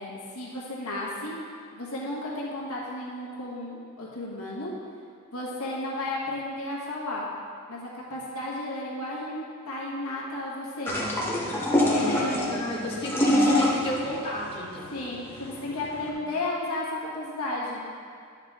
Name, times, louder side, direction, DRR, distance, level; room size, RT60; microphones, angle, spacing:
voice 1, 0.0-1.3 1.7-4.7 5.3-7.3 7.7-10.9 11.7-12.6 14.9-17.8, left 2 dB, 75° left, -5 dB, 1.6 m, -33 dB
sound 1, 10.9-16.1, left 1 dB, 10° left, 1.0 m, -25 dB
voice 2, 12.0-14.9 16.1-16.2, left 1 dB, 25° left, -6 dB, 1.3 m, -33 dB
10.5 x 5.7 x 3.5 m, 2.2 s
head